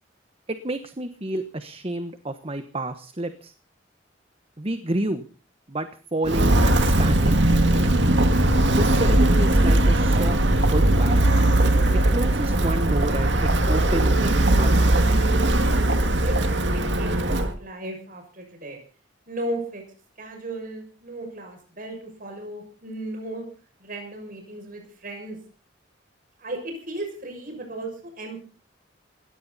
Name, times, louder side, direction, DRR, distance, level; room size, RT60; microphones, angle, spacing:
voice 1, 0.5-3.5 4.6-5.2 5.7-7.4 7.7-7.9 8.7-11.2 12.1-15.0, right 1 dB, 30° right, 10 dB, 1.1 m, -30 dB
Walk footsteps, 6.2-17.5, right 1 dB, 60° right, 2.1 m, -19 dB
voice 2, 16.1-18.8 19.3-19.8 20.2-23.4 23.8-25.4 26.4-28.4, right 1 dB, 45° right, 3 dB, 6.6 m, -35 dB
20.0 x 17.0 x 4.1 m, 0.38 s
head